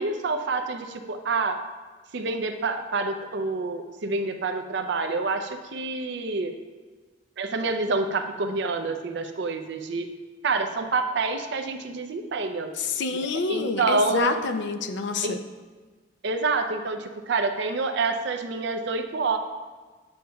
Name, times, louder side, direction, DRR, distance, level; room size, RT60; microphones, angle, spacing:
voice 1, 0.0-1.6 2.1-6.5 7.4-10.1 10.4-12.7 13.5-14.4 15.2-15.4 16.2-19.4, right 3 dB, 65° right, 6 dB, 0.5 m, -27 dB
voice 2, 12.7-15.4, left 4 dB, 65° left, 8 dB, 0.5 m, -27 dB
8.5 x 6.3 x 2.3 m, 1.4 s
head